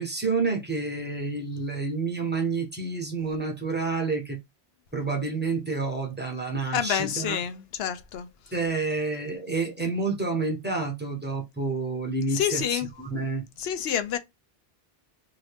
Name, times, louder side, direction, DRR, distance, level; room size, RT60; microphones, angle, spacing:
voice 1, 0.0-4.4 4.9-7.4 8.5-13.5, right 3 dB, 10° right, 0.8 m, -29 dB
voice 2, 6.7-8.3 12.3-12.9 13.6-14.2, left 9 dB, 80° left, 0.8 m, -28 dB
2.7 x 2.7 x 3.3 m
omnidirectional pair, 1.0 m